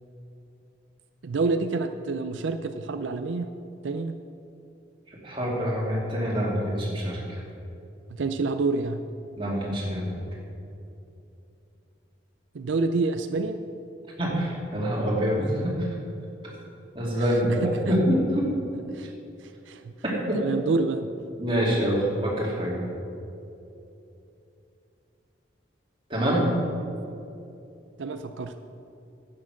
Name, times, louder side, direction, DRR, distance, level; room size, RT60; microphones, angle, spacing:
voice 1, 1.2-3.5 3.8-4.1 8.1-9.0 12.5-13.6 17.2-18.0 18.9-19.1 19.4-19.9 20.3-21.1 28.0-28.5, right 3 dB, 85° right, 8 dB, 0.5 m, -28 dB
voice 2, 5.1-7.4 9.4-10.1 14.2-15.9 16.9-18.5 20.0-20.4 21.4-22.7 26.1-26.4, equal, 25° right, -4 dB, 2.7 m, -26 dB
11.0 x 8.8 x 6.4 m, 2.8 s
head